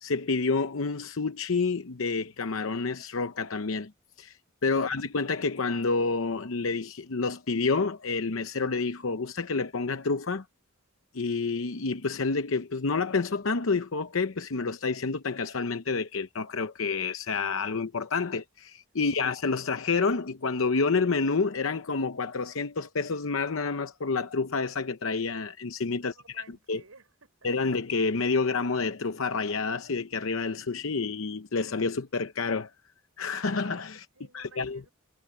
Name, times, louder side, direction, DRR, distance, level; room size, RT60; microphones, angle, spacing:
voice 1, 0.0-3.9 4.2-4.4 4.6-10.4 11.1-26.4 26.7-26.8 27.4-32.7 33.2-34.0 34.3-34.8, left 4 dB, 70° left, 0.8 m, -29 dB
voice 2, 26.0-27.5 33.9-34.9, right 3 dB, 90° right, 6.1 m, -55 dB
head